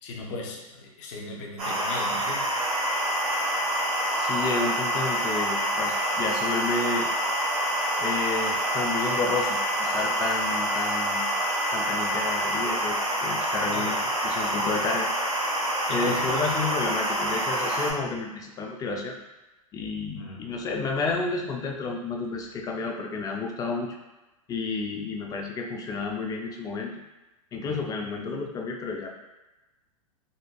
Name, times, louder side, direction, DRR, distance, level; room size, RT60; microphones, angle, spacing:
voice 1, 0.0-2.5 13.7-14.0 15.9-16.5 20.0-20.4 27.6-27.9, left 2 dB, 60° left, -1 dB, 0.7 m, -37 dB
sound 1, 1.6-17.9, right 1 dB, 90° right, 1.4 m, -27 dB
sound 2, 2.6-12.6, left 5 dB, 70° right, 0.5 m, -35 dB
voice 2, 4.1-7.1 8.0-11.3 11.7-15.1 15.9-19.2 19.7-23.9 24.5-26.9 27.5-29.1, left 3 dB, 20° left, 1 dB, 0.5 m, -31 dB
4.1 x 2.4 x 2.2 m, 1.1 s
hypercardioid pair, 110°, 18 cm